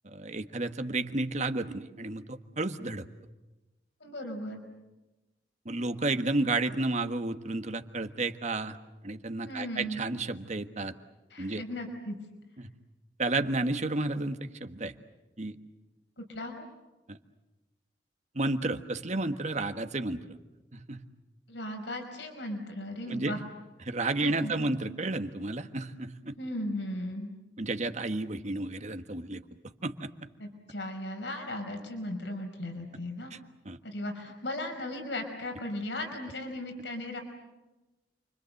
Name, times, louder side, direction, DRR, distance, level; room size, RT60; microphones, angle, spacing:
voice 1, 0.0-3.0 5.6-8.8 9.0-10.9 11.4-11.6 12.6-12.7 13.2-14.9 15.4-15.5 17.1-17.2 18.3-20.2 20.7-21.1 23.1-23.4 23.8-26.4 27.6-29.4 29.8-30.1 33.3-33.4 33.6-33.8, right 2 dB, 40° right, 8 dB, 1.5 m, -32 dB
voice 2, 4.0-4.6 9.4-10.0 11.3-12.1 16.2-16.6 21.5-23.4 24.2-24.5 26.4-27.4 30.4-33.4 33.8-37.2, left 1 dB, 80° left, 4 dB, 5.1 m, -37 dB
29.0 x 24.5 x 7.9 m, 1.1 s
head